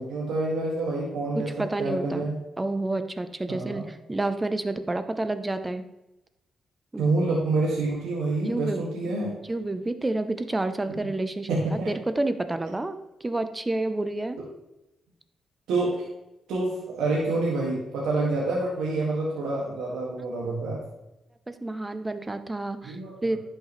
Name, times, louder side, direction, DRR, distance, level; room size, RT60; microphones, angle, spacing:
voice 1, 0.0-2.3 3.5-3.9 7.0-9.3 10.9-11.0 11.5-11.9 15.7-16.1 16.5-20.8 22.8-23.3, right 2 dB, 90° right, -4 dB, 1.9 m, -27 dB
voice 2, 1.3-2.3 2.6-5.8 6.9-7.0 8.5-8.8 9.5-11.5 11.9-13.0 13.2-14.4 21.5-23.4, right 2 dB, 20° right, 10 dB, 0.7 m, -29 dB
10.5 x 6.6 x 3.2 m, 0.93 s
cardioid pair, 80°, 0 cm